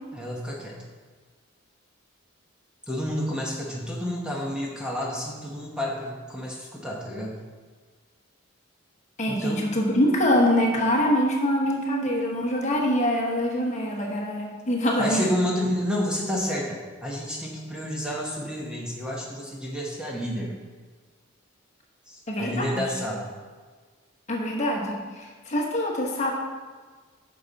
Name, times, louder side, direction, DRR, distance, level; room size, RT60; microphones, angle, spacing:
voice 1, 0.1-0.7 2.9-7.3 9.3-9.6 15.0-20.5 22.1-23.3, equal, 5° right, -3 dB, 1.0 m, -30 dB
voice 2, 9.2-15.3 22.3-22.8 24.3-25.0 25.5-26.3, equal, 35° left, -1 dB, 1.1 m, -24 dB
8.7 x 5.7 x 4.1 m, 1.5 s
head